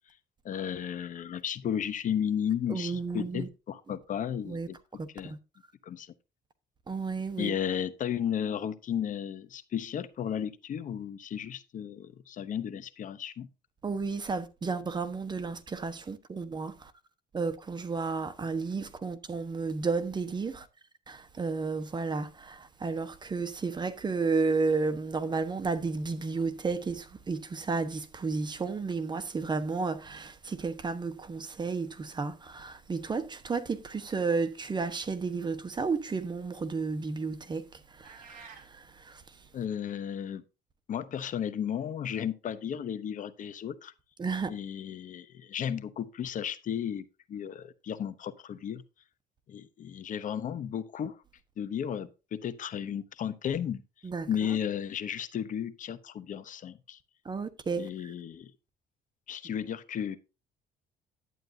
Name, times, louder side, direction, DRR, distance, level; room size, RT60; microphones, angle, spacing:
voice 1, 0.4-4.8 5.1-5.4 5.8-6.1 7.4-13.5 39.5-40.4 40.9-43.9 44.5-48.8 49.5-51.2 51.6-53.8 54.3-57.0 57.8-58.5 59.3-60.2, left 9 dB, 50° left, 0.9 m, -34 dB
voice 2, 2.7-3.5 4.4-4.7 5.0-5.4 6.9-7.5 13.8-16.9 17.3-20.7 21.1-37.7 37.9-39.2 44.2-44.5 54.0-54.3 57.2-57.9, right 4 dB, 25° right, 1.1 m, -32 dB
sound 1, 38.0-38.7, right 5 dB, 55° right, 3.7 m, -50 dB
11.0 x 9.2 x 2.7 m
cardioid pair, 110°, 17 cm